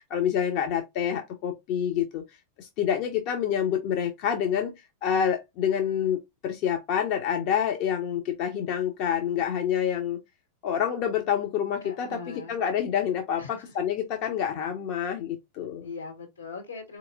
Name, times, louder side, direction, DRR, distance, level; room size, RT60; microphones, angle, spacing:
voice 1, 0.0-2.2 2.6-4.7 5.0-10.2 10.6-15.9, left 8 dB, 45° left, 0.7 m, -27 dB
voice 2, 11.8-12.6 13.4-13.6 15.8-17.0, left 4 dB, 80° left, 1.7 m, -40 dB
4.1 x 2.9 x 2.5 m
figure-of-eight pair, 90°, 0 cm